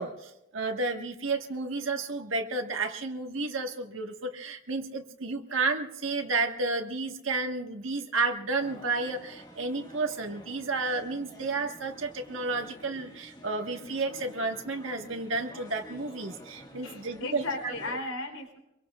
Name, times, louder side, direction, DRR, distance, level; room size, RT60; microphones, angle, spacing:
voice 1, 0.0-17.7, right 3 dB, 70° right, 4 dB, 1.5 m, -31 dB
sound 1, 8.6-18.0, equal, 20° left, 1.7 m, -49 dB
voice 2, 16.8-18.6, left 2 dB, 80° left, 3 dB, 3.5 m, -35 dB
26.0 x 23.0 x 2.4 m, 0.88 s
head